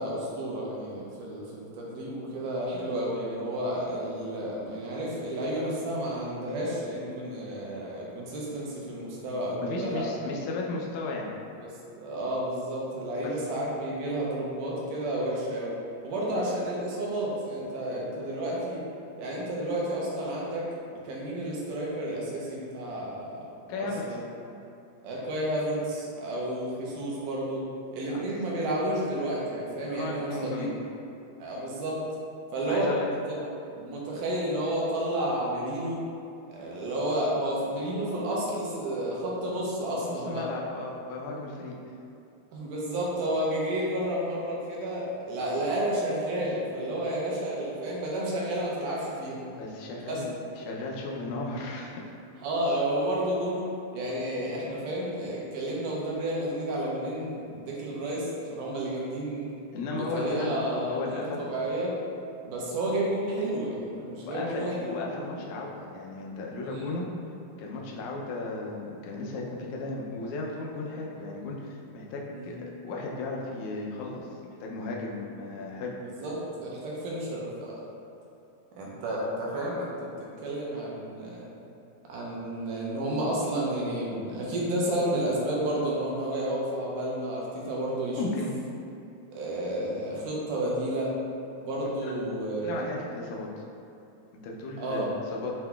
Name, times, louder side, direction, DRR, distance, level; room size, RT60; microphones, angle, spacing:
voice 1, 0.0-10.1 11.6-15.8 16.0-18.8 19.2-23.5 23.8-24.2 25.0-27.7 27.9-30.7 31.4-32.0 32.5-32.9 33.3-33.4 33.7-36.0 36.5-40.5 42.5-49.4 49.9-50.2 52.4-53.7 53.9-59.5 59.9-61.9 62.4-64.9 66.7-66.9 72.3-72.6 76.0-77.8 78.8-80.1 80.4-81.5 82.1-88.4 89.3-91.1 91.6-92.9 94.8-95.1, right 1 dB, 80° right, -4 dB, 2.3 m, -31 dB
voice 2, 9.6-11.3 13.2-13.3 23.7-24.2 28.1-28.2 29.9-30.7 32.7-33.1 40.1-41.8 49.6-52.2 59.7-61.5 64.3-67.1 67.6-72.6 72.8-74.3 74.6-75.9 88.2-88.5 92.6-93.5 94.4-95.5, left 3 dB, 80° left, -2 dB, 1.8 m, -35 dB
7.6 x 2.8 x 2.3 m, 2.7 s
omnidirectional pair, 3.8 m